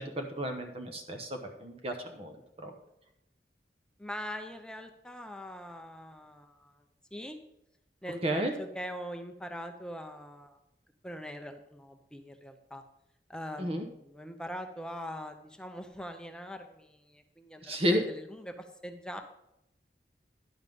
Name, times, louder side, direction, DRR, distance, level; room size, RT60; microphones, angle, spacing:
voice 1, 0.0-2.4 2.6-2.7 8.2-8.5 13.6-13.8 17.6-18.0, equal, 35° right, 4 dB, 0.9 m, -32 dB
voice 2, 4.0-6.8 7.1-7.4 8.0-10.6 11.0-12.8 13.3-19.2, equal, 5° left, 6 dB, 0.7 m, -42 dB
11.0 x 5.6 x 5.3 m, 0.85 s
head